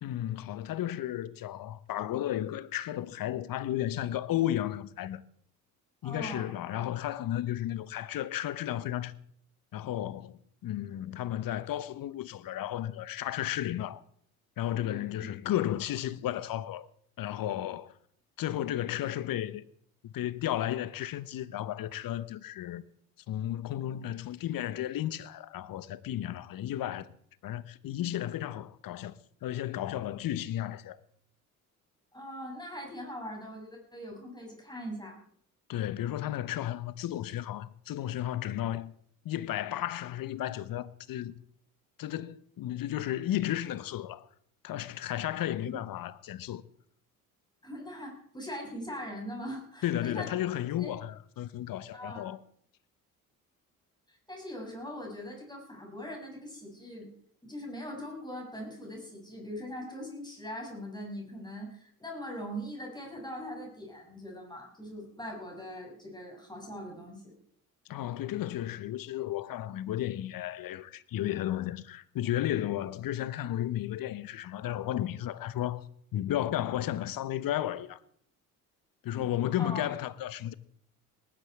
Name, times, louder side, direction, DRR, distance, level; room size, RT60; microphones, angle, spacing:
voice 1, 0.0-5.2 6.0-9.1 9.7-14.0 14.6-16.9 17.2-17.9 18.4-19.6 20.0-22.8 23.3-27.1 27.4-29.1 29.4-31.0 35.7-38.9 39.2-41.3 42.0-44.3 44.6-46.7 49.8-52.4 67.9-75.9 76.1-78.0 79.0-80.5, left 12 dB, 50° left, 1.1 m, -33 dB
voice 2, 6.0-6.5 14.8-15.3 32.1-35.2 45.6-45.8 47.6-50.5 50.8-50.9 51.9-52.3 54.1-57.1 57.4-67.2 79.6-79.8, equal, 10° left, 7.4 m, -41 dB
19.0 x 11.5 x 4.7 m
hypercardioid pair, 55°, 43 cm